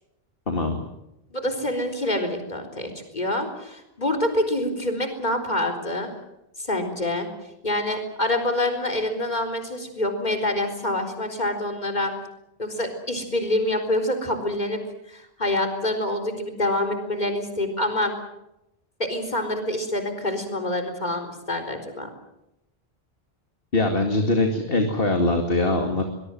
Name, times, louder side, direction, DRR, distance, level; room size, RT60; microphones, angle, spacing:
voice 1, 0.5-0.8 23.7-26.0, left 2 dB, 60° left, 4 dB, 2.6 m, -22 dB
voice 2, 1.3-6.1 6.6-7.3 7.6-12.1 12.6-14.8 15.1-18.1 19.0-22.1, left 1 dB, 45° left, 5 dB, 4.2 m, -26 dB
23.5 x 21.5 x 7.8 m, 0.88 s
omnidirectional pair, 1.1 m